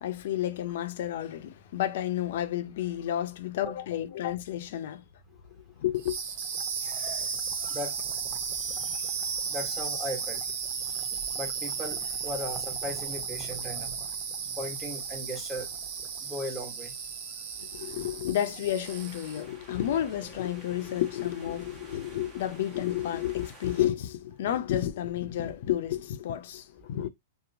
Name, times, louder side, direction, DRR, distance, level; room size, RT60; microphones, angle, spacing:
voice 1, 0.0-5.0 5.8-6.2 17.7-27.1, left 12 dB, 65° left, 0.5 m, -31 dB
sound 1, 5.8-17.0, left 2 dB, 5° left, 0.8 m, -51 dB
sound 2, 6.0-19.5, right 6 dB, 55° right, 0.6 m, -34 dB
voice 2, 7.7-8.2 8.7-9.0 9.5-10.4 11.3-13.9 14.6-15.7 16.2-17.0 17.3-17.5 17.7-17.9, left 1 dB, 10° right, 1.2 m, -38 dB
sound 3, 18.8-23.9, right 3 dB, 30° right, 0.9 m, -50 dB
2.8 x 2.0 x 2.6 m
hypercardioid pair, 115°, 0 cm